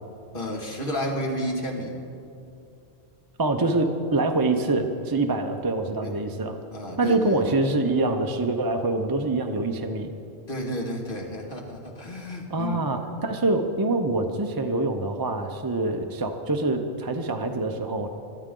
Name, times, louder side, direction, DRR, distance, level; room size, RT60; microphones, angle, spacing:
voice 1, 0.3-1.9 6.0-6.1 6.7-7.4 10.5-12.8, equal, 50° left, -1 dB, 2.2 m, -31 dB
voice 2, 3.4-6.6 7.0-10.1 12.5-18.1, right 2 dB, 25° right, 4 dB, 0.7 m, -25 dB
22.0 x 13.0 x 3.8 m, 2.6 s
omnidirectional pair, 1.1 m